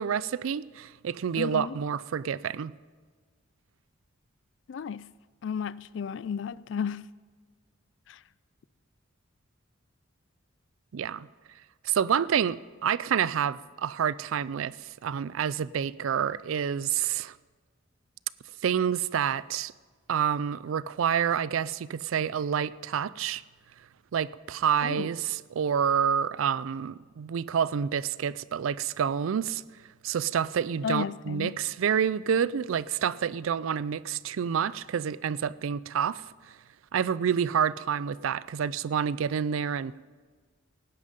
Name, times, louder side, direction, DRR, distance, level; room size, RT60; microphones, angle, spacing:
voice 1, 0.0-2.7 10.9-11.3 11.8-12.6 12.8-14.7 15.0-17.3 18.6-19.7 20.1-23.4 24.1-29.6 30.0-36.2 36.9-40.0, right 8 dB, 80° right, 0.4 m, -28 dB
voice 2, 1.4-1.8 4.7-5.1 5.4-7.1 8.1-8.2 24.8-25.1 30.8-31.6, left 7 dB, 60° left, 0.3 m, -33 dB
17.5 x 10.0 x 5.2 m
head